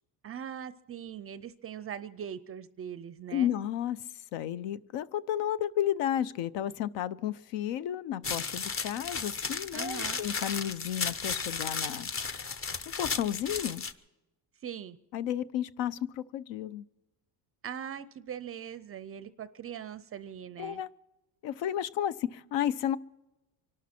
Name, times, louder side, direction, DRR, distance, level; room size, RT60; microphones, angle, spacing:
voice 1, 0.2-3.5 9.7-10.3 14.6-15.0 17.6-20.8, right 8 dB, 35° right, 15 dB, 0.4 m, -41 dB
voice 2, 3.3-4.0 4.3-12.1 12.9-13.8 15.1-16.8 20.6-20.9 21.4-23.0, left 11 dB, 75° left, 17 dB, 0.8 m, -32 dB
sound 1, 8.2-13.9, left 5 dB, 30° left, 0.8 m, -34 dB
25.0 x 12.5 x 4.4 m, 0.98 s
cardioid pair, 160°, 44 cm